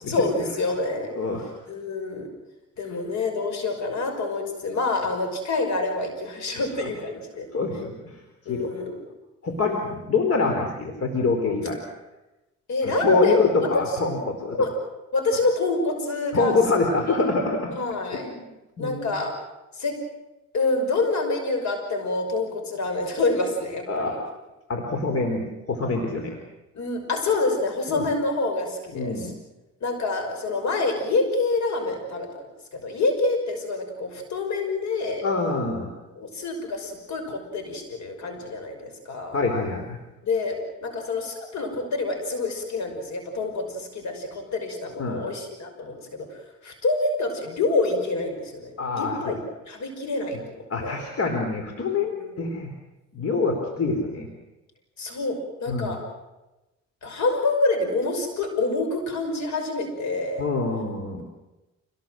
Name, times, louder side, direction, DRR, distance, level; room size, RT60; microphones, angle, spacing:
voice 1, 0.1-1.1 1.7-2.3 2.8-7.5 8.5-9.1 12.7-13.8 14.1-14.7 15.1-16.6 17.2-17.3 17.7-18.3 18.8-19.3 19.7-20.0 20.5-24.2 26.7-29.3 29.8-32.3 32.7-35.3 36.2-39.4 40.2-49.4 49.7-50.4 50.8-51.0 51.9-52.3 55.0-56.0 57.0-60.4, left 3 dB, 65° left, 5 dB, 5.7 m, -27 dB
voice 2, 7.5-8.2 8.5-8.7 9.4-11.8 12.8-14.6 16.3-17.7 18.1-18.3 18.8-19.1 23.9-24.2 24.7-26.4 27.9-28.0 28.9-29.3 35.2-35.9 39.3-40.0 45.0-45.2 48.8-49.4 50.7-52.7 53.1-54.3 55.7-55.9 60.4-61.2, left 3 dB, 50° left, 3 dB, 4.2 m, -25 dB
27.5 x 19.0 x 7.8 m, 1.0 s
cardioid pair, 90°, 30 cm